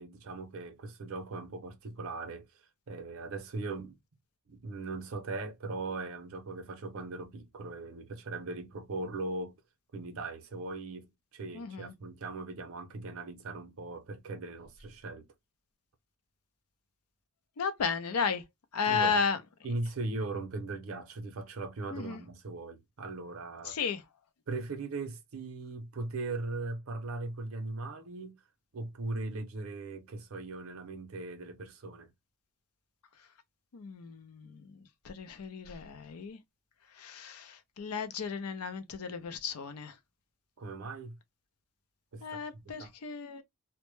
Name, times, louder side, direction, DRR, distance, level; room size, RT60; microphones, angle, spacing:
voice 1, 0.0-2.5 2.9-4.0 4.5-9.6 9.9-15.3 18.8-19.2 19.6-23.8 24.5-28.4 28.7-32.1 40.6-41.1 42.1-42.9, right 3 dB, 70° right, 0.6 m, -39 dB
voice 2, 11.5-11.9 17.6-18.4 18.7-19.4 21.9-22.2 23.6-24.0 33.7-34.8 35.0-36.4 36.9-40.0 42.2-43.4, left 5 dB, 80° left, 0.5 m, -34 dB
2.1 x 2.0 x 3.0 m
head